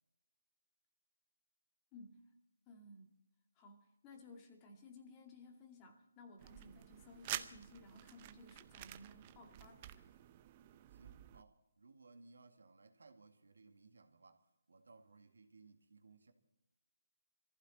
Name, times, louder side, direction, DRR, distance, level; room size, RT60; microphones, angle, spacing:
voice 1, 1.9-2.2 2.7-3.1 3.6-10.1, left 2 dB, 20° left, 2.3 m, -58 dB
sound 1, 6.4-11.4, right 13 dB, 25° right, 0.7 m, -49 dB
voice 2, 10.9-16.3, right 3 dB, 80° right, 2.1 m, -62 dB
21.5 x 15.0 x 4.3 m
hypercardioid pair, 160°, 0 cm